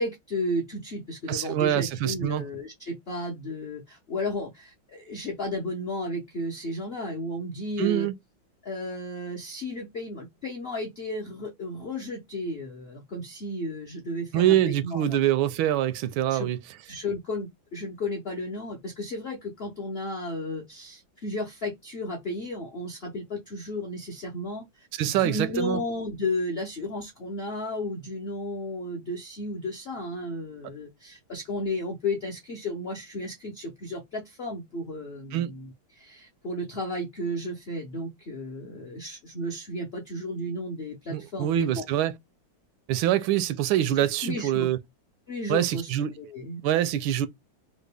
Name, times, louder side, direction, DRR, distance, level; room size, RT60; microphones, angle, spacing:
voice 1, 0.0-8.1 8.6-15.2 16.3-16.5 16.9-41.8 43.9-44.7 45.3-45.9 46.2-46.6, left 1 dB, 65° left, 0.5 m, -33 dB
voice 2, 1.3-2.5 7.8-8.1 14.3-16.6 25.0-25.8 35.3-35.5 41.1-42.2 42.9-44.8 45.5-46.1 46.6-47.3, right 12 dB, 85° right, 1.4 m, -25 dB
3.7 x 2.2 x 3.3 m
omnidirectional pair, 2.1 m